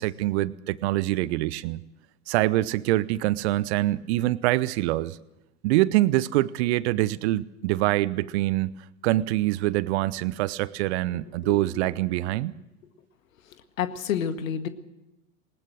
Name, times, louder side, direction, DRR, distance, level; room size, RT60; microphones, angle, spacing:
voice 1, 0.0-1.8 2.3-5.2 5.6-8.8 9.0-12.5, right 17 dB, 50° right, 20 dB, 0.9 m, -25 dB
voice 2, 11.1-11.9 13.8-14.7, left 8 dB, 65° left, 10 dB, 1.9 m, -30 dB
21.0 x 19.5 x 6.4 m, 1.0 s
figure-of-eight pair, 85°, 43 cm